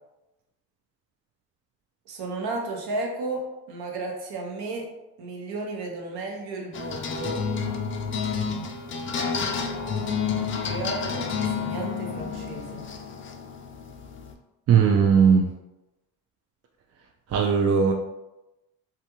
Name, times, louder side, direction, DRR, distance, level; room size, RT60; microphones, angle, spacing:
voice 1, 2.1-4.9 5.2-7.4 10.6-12.8, right 2 dB, 65° right, 1 dB, 0.8 m, -33 dB
sound 1, 6.7-14.3, left 5 dB, 30° left, 0.4 m, -30 dB
voice 2, 14.7-15.4 17.3-17.9, right 6 dB, 40° right, 2 dB, 0.4 m, -18 dB
2.5 x 2.3 x 2.9 m, 0.97 s
supercardioid pair, 65°, 41 cm